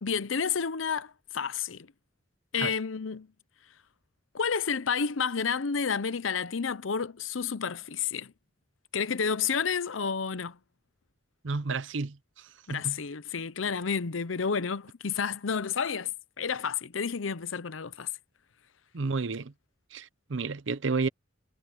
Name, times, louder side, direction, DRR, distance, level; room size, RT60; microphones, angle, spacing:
voice 1, 0.0-1.9 2.5-3.3 4.3-8.3 8.9-10.6 12.7-18.1, left 6 dB, 90° left, 0.7 m, -30 dB
voice 2, 11.4-12.2 12.7-13.0 18.9-19.5 19.9-21.1, right 4 dB, 75° right, 0.7 m, -31 dB
head